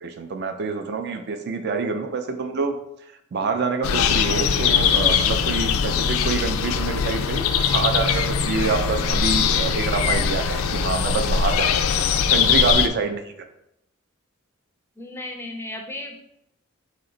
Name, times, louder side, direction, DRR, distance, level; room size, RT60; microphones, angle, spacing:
voice 1, 0.0-2.8 3.3-11.7 12.3-13.3, right 4 dB, 50° right, 7 dB, 0.4 m, -26 dB
sound 1, 3.8-12.9, left 6 dB, 85° left, 0.3 m, -21 dB
voice 2, 15.0-16.2, left 2 dB, 10° left, 3 dB, 0.4 m, -34 dB
4.2 x 2.9 x 3.8 m, 0.82 s
head